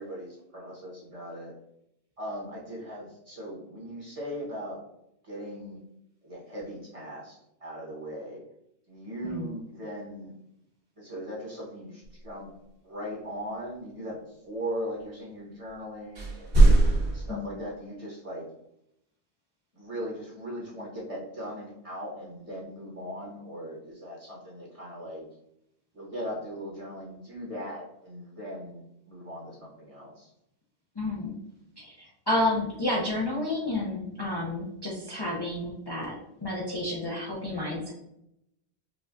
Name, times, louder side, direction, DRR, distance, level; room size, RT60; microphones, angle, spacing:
voice 1, 0.0-1.6 2.2-4.8 5.2-5.8 6.2-8.4 8.9-10.3 11.0-12.5 12.8-16.6 17.1-18.5 19.7-25.2 25.9-30.3, equal, 35° right, -5 dB, 1.1 m, -39 dB
sound 1, 16.2-17.3, right 2 dB, 75° right, 1.8 m, -19 dB
voice 2, 31.0-31.4 31.8-36.1 36.4-37.9, left 1 dB, 30° left, -5 dB, 0.6 m, -30 dB
5.1 x 2.3 x 2.5 m, 0.80 s
omnidirectional pair, 1.1 m